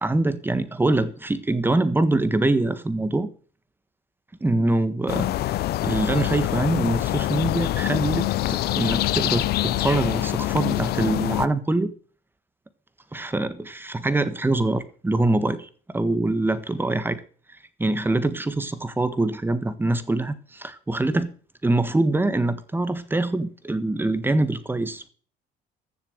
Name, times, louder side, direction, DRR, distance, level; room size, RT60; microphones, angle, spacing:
voice 1, 0.0-3.3 4.4-5.6 5.8-11.9 13.1-17.2 17.8-21.3 21.6-25.1, right 2 dB, 10° right, 1.5 m, -24 dB
sound 1, 5.1-11.5, left 15 dB, 70° left, 0.6 m, -25 dB
15.0 x 7.0 x 6.6 m
cardioid pair, 110°, 17 cm